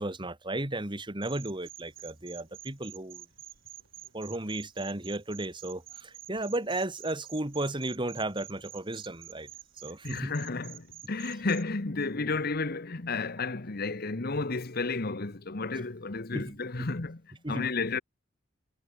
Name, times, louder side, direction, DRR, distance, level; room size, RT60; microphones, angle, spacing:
voice 1, 0.0-3.2 4.1-9.5 9.8-10.3 16.3-16.9 17.4-17.7, right 1 dB, 25° right, 2.3 m, -34 dB
sound 1, 1.2-11.6, right 12 dB, 75° right, 4.5 m, -49 dB
voice 2, 10.0-17.2 17.5-18.0, left 3 dB, 50° left, 1.2 m, -32 dB
head